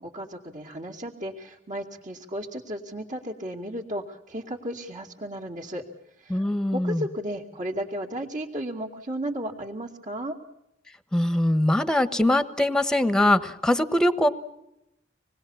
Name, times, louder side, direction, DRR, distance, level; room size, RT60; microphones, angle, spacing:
voice 1, 0.0-5.8 6.2-6.4 6.7-10.4, equal, 45° right, -4 dB, 2.6 m, -34 dB
voice 2, 6.3-7.0 11.1-14.3, left 1 dB, 5° left, 12 dB, 1.2 m, -22 dB
26.5 x 20.0 x 7.2 m, 0.86 s
head